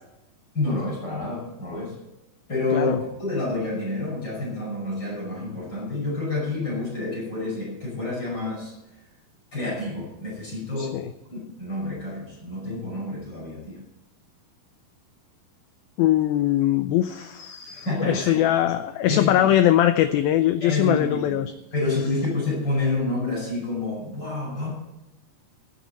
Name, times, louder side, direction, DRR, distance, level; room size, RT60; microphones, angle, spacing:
voice 1, 0.5-2.0 2.5-2.9 3.2-8.7 9.5-11.0 11.3-13.8 17.7-18.5 19.1-19.5 20.6-21.4 21.7-24.7, left 2 dB, 25° left, -4 dB, 5.9 m, -28 dB
voice 2, 10.8-11.1 16.0-21.5, left 12 dB, 90° left, 10 dB, 2.1 m, -21 dB
16.5 x 8.7 x 4.2 m, 0.99 s
omnidirectional pair, 4.9 m